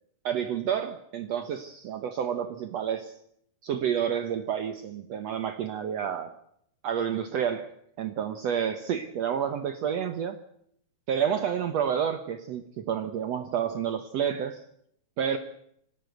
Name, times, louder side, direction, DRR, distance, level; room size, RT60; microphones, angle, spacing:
voice 1, 0.2-3.1 3.6-6.3 6.8-7.7 8.0-10.4 11.1-14.6 15.2-15.4, right 8 dB, 85° right, 9 dB, 1.4 m, -29 dB
27.0 x 12.5 x 7.9 m, 0.71 s
omnidirectional pair, 4.5 m